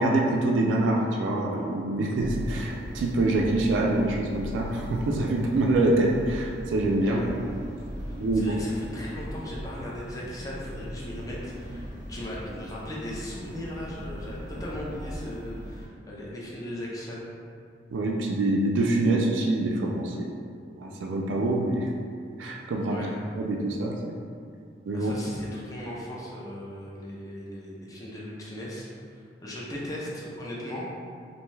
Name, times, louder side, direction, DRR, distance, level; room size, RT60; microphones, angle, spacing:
voice 1, 0.0-7.2 8.2-8.6 17.9-20.3 20.8-21.9 22.4-23.1 23.4-24.2 24.9-25.1, right 2 dB, 85° right, 0 dB, 0.3 m, -25 dB
sound 1, 2.2-15.8, equal, 40° right, 0.7 m, -38 dB
voice 2, 8.0-17.2 22.9-23.1 24.9-30.9, left 1 dB, 20° left, -5 dB, 0.4 m, -38 dB
2.6 x 2.2 x 3.1 m, 2.3 s
head